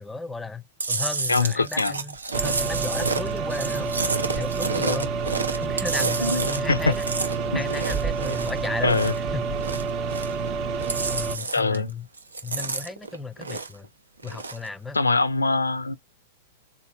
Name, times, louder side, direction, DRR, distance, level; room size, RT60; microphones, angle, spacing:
voice 1, 0.0-3.9 4.4-5.1 5.5-7.0 7.5-9.0 9.3-9.6 11.1-12.1 12.4-13.9 14.2-15.0, left 3 dB, 10° left, 0.5 m, -34 dB
Chewing mastication, 0.8-9.3 9.5-10.5 10.7-11.9 12.2-13.9 14.2-14.7, right 3 dB, 85° right, 0.5 m, -30 dB
voice 2, 1.3-2.0 6.2-6.9 7.5-7.6 8.8-9.1 11.5-11.9 14.9-16.0, left 3 dB, 90° left, 0.4 m, -23 dB
sound 1, 2.3-11.4, right 5 dB, 40° right, 0.6 m, -28 dB
3.6 x 2.7 x 2.8 m
figure-of-eight pair, 100°, 0 cm